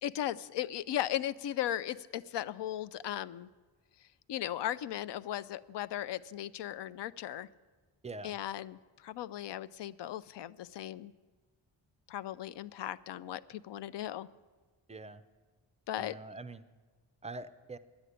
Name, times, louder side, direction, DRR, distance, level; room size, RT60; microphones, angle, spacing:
voice 1, 0.0-3.5 4.3-7.5 8.2-11.1 12.1-14.3 15.9-16.2, left 12 dB, 65° left, 16 dB, 0.5 m, -37 dB
voice 2, 8.0-8.4 14.9-15.2 16.0-16.7 17.2-17.8, right 2 dB, 15° right, 13 dB, 0.3 m, -44 dB
10.0 x 8.0 x 9.9 m, 1.4 s
wide cardioid pair, 130°, 45 cm